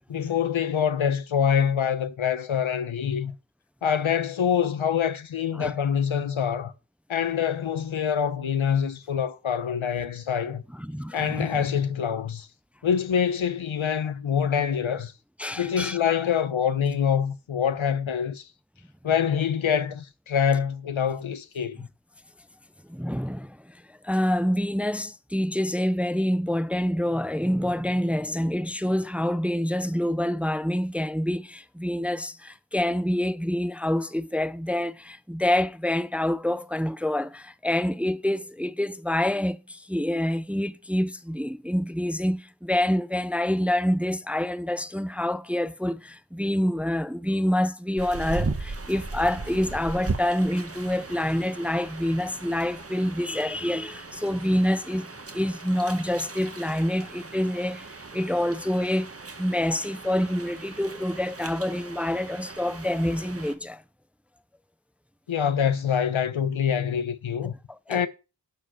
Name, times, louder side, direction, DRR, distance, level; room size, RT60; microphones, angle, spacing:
voice 1, 0.1-3.3 3.8-6.7 7.1-10.6 11.1-12.5 12.8-15.1 15.6-18.5 19.0-21.9 65.3-67.5 67.9-68.1, left 8 dB, 90° left, 1.2 m, -25 dB
voice 2, 10.8-11.7 15.4-16.0 22.9-23.8 24.0-59.1 59.4-63.8 67.7-68.0, left 1 dB, 5° right, 0.5 m, -27 dB
sound 1, 48.0-63.5, right 3 dB, 30° right, 1.4 m, -38 dB
12.0 x 4.9 x 6.4 m
wide cardioid pair, 80°, 46 cm